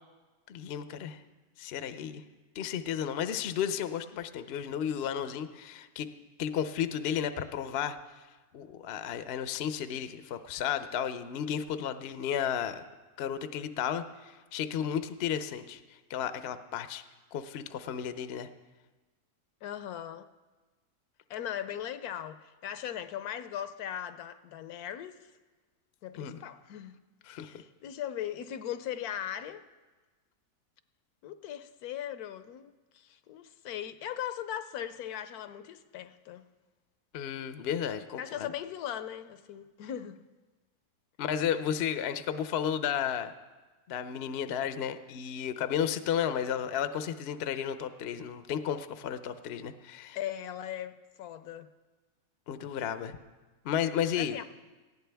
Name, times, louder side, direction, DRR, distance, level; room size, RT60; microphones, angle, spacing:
voice 1, 0.5-1.2 1.6-2.2 2.5-6.1 6.4-8.0 8.5-12.9 13.2-15.8 16.1-17.0 17.3-18.5 26.2-26.4 27.3-27.6 37.1-38.5 41.2-43.3 43.9-50.2 52.5-53.1 53.6-54.4, left 9 dB, 60° left, 0.7 m, -33 dB
voice 2, 19.6-20.3 21.3-25.3 26.0-27.0 27.3-29.6 31.2-36.5 38.2-40.2 50.1-51.7 54.2-54.4, left 10 dB, 75° left, 1.1 m, -39 dB
19.0 x 15.0 x 3.4 m
omnidirectional pair, 1.7 m